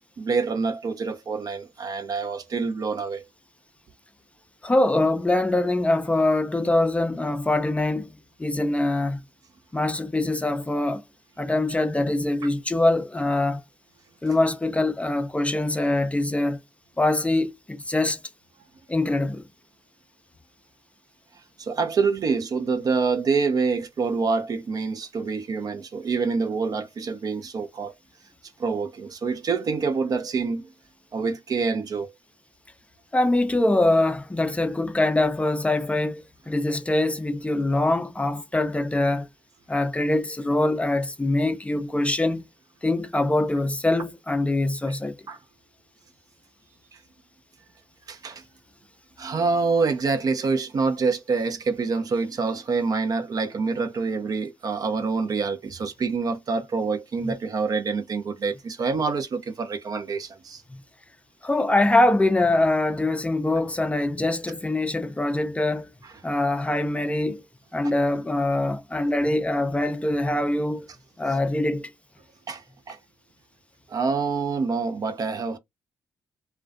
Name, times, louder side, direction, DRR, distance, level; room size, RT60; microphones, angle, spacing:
voice 1, 0.2-3.2 21.6-27.9 28.6-30.7 31.1-32.1 45.3-45.4 46.9-47.0 48.1-48.4 49.2-60.6 71.2-71.4 72.5-73.0 73.9-75.6, right 4 dB, 50° right, 0.5 m, -26 dB
voice 2, 4.6-8.1 8.4-9.2 9.7-11.0 11.4-13.6 14.2-16.6 17.0-18.2 18.9-19.4 33.1-39.3 39.7-42.4 42.8-45.1 57.3-57.4 60.7-60.8 61.4-65.9 66.2-67.4 67.7-70.9 71.2-71.9, left 2 dB, 15° left, 0.4 m, -23 dB
2.4 x 2.1 x 2.4 m
supercardioid pair, 60°, 8 cm